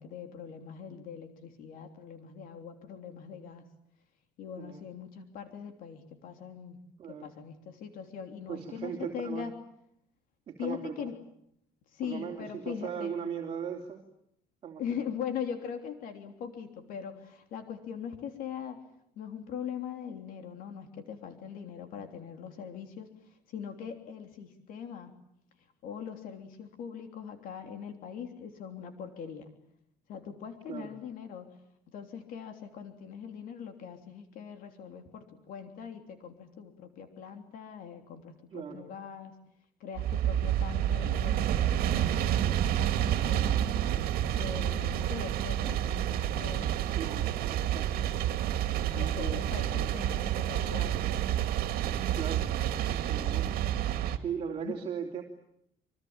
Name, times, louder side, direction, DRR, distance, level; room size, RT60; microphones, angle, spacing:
voice 1, 0.0-3.7 4.4-6.8 7.1-9.5 10.6-11.1 11.9-13.1 14.8-18.8 19.2-25.1 25.8-29.5 30.1-31.5 31.9-39.4 39.8-43.5 44.4-46.7 48.9-51.1 54.6-54.8, left 7 dB, 60° left, 6 dB, 3.4 m, -41 dB
voice 2, 7.0-7.3 8.5-9.5 10.5-11.1 12.0-14.0 14.6-15.0 30.7-30.9 38.5-38.9 47.0-47.9 48.8-49.4 52.1-52.5 53.1-53.5 54.1-55.2, right 7 dB, 35° right, 1 dB, 3.1 m, -38 dB
sound 1, 40.0-54.2, right 11 dB, 65° right, 2.3 m, -29 dB
27.0 x 24.5 x 8.9 m, 0.75 s
cardioid pair, 175°, 16 cm